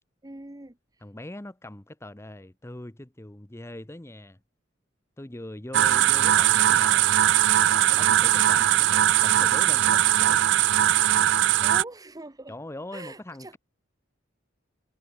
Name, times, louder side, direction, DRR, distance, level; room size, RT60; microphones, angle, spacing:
voice 1, 0.2-0.8 11.4-12.5 12.9-13.6, right 2 dB, 20° right, 1.1 m, -42 dB
voice 2, 1.0-4.4 5.2-7.1 7.7-10.4 12.5-13.6, left 1 dB, 15° left, 0.9 m, -41 dB
sound 1, 5.7-11.8, right 12 dB, 65° right, 0.4 m, -20 dB
head